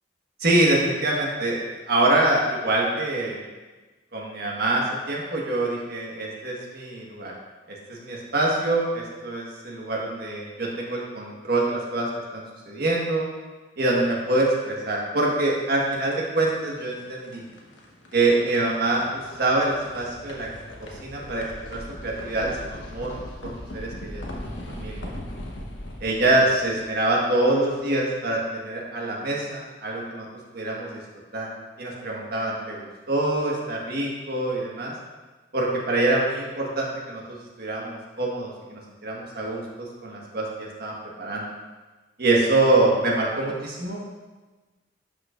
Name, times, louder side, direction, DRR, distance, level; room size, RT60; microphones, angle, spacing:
voice 1, 0.4-3.4 4.1-7.3 7.7-13.3 13.8-17.4 18.1-20.5 20.8-24.2 24.7-25.1 26.0-30.3 30.5-31.0 31.3-31.5 31.8-34.9 35.5-41.5 42.2-44.0, right 2 dB, 55° right, -2 dB, 1.5 m, -25 dB
sound 1, 15.5-27.6, left 1 dB, 80° left, 1.1 m, -40 dB
11.0 x 5.3 x 2.5 m, 1.3 s
head